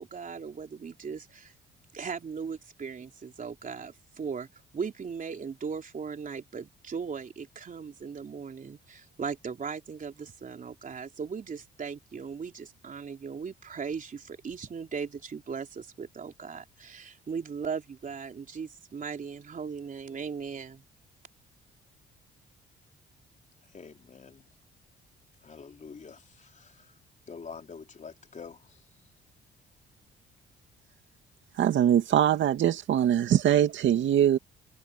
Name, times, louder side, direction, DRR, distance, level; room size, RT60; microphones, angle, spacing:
voice 1, 0.0-1.5 1.9-4.5 4.7-20.8, right 6 dB, 40° right, 3.7 m, -38 dB
voice 2, 23.7-24.4 25.4-26.9 27.3-28.8, left 5 dB, 40° left, 4.0 m, -46 dB
voice 3, 31.6-34.4, right 10 dB, 70° right, 2.2 m, -22 dB
cardioid pair, 90°, 20 cm